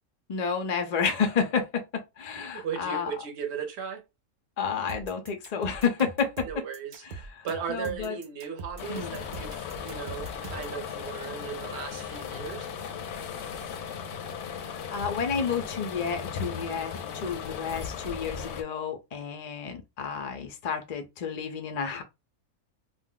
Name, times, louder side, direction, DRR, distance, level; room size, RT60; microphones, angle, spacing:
voice 1, 0.3-3.1 4.6-6.6 7.0-8.2 8.9-9.2 14.6-22.0, left 6 dB, 85° left, 0.3 m, -31 dB
voice 2, 2.4-4.0 6.4-7.0 7.4-12.7, right 7 dB, 60° right, 0.8 m, -36 dB
sound 1, 4.9-10.8, right 4 dB, 85° right, 0.4 m, -42 dB
sound 2, 8.8-18.6, left 7 dB, 65° left, 0.7 m, -37 dB
2.5 x 2.0 x 3.7 m
omnidirectional pair, 1.5 m